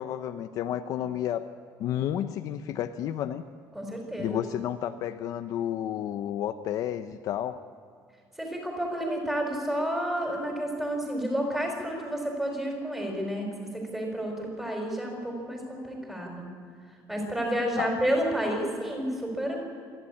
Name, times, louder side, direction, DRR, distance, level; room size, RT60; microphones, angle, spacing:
voice 1, 0.0-1.5 1.8-3.4 4.2-7.6 17.8-17.9, left 11 dB, 55° left, 9 dB, 0.7 m, -31 dB
voice 2, 3.7-4.4 8.4-16.5 17.1-19.6, equal, 5° right, 1 dB, 4.7 m, -30 dB
27.0 x 11.5 x 8.6 m, 2.2 s
cardioid pair, 170°, 7 cm